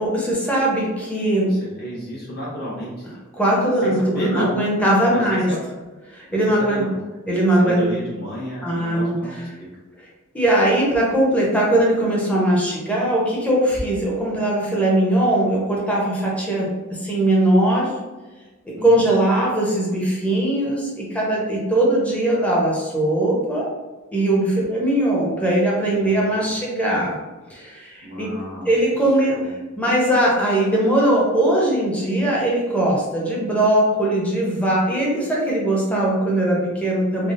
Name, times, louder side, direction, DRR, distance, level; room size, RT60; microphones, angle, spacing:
voice 1, 0.0-1.5 3.4-5.5 6.1-6.8 7.3-7.9 8.6-9.1 10.3-17.9 18.8-23.7 24.1-27.2 27.5-28.3 28.6-29.3 29.8-37.3, right 1 dB, 5° left, -4 dB, 0.6 m, -20 dB
voice 2, 1.5-3.1 3.8-4.6 5.1-5.6 6.3-7.0 7.5-9.7 18.7-19.0 25.9-26.5 28.0-28.7 29.3-29.5, right 1 dB, 50° left, -6 dB, 1.1 m, -32 dB
3.3 x 2.0 x 2.4 m, 1.2 s
head